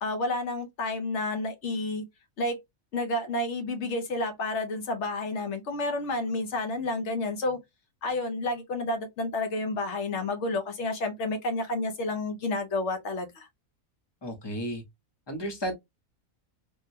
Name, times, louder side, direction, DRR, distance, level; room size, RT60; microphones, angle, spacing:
voice 1, 0.0-2.1 2.4-2.6 2.9-7.6 8.0-13.5, left 2 dB, 65° left, 0.9 m, -30 dB
voice 2, 14.2-14.8 15.3-15.7, equal, 25° left, 0.6 m, -33 dB
3.6 x 2.1 x 2.6 m
omnidirectional pair, 1.4 m